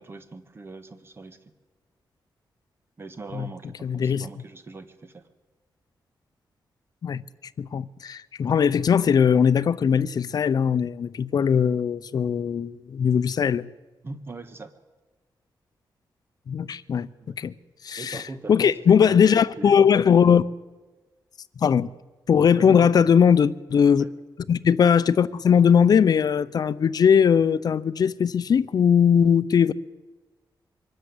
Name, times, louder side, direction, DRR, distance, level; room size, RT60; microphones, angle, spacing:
voice 1, 0.0-1.4 3.0-5.3 14.0-14.7 17.2-17.4 17.9-19.9 22.5-23.2 24.0-24.1, right 3 dB, 30° right, 1.6 m, -40 dB
voice 2, 3.8-4.3 7.0-7.2 7.6-13.7 16.5-17.5 17.8-18.2 18.5-20.4 21.6-21.9 22.3-24.0 24.5-29.7, left 7 dB, 55° left, 0.7 m, -20 dB
23.5 x 13.0 x 9.7 m
wide cardioid pair, 140°, 8 cm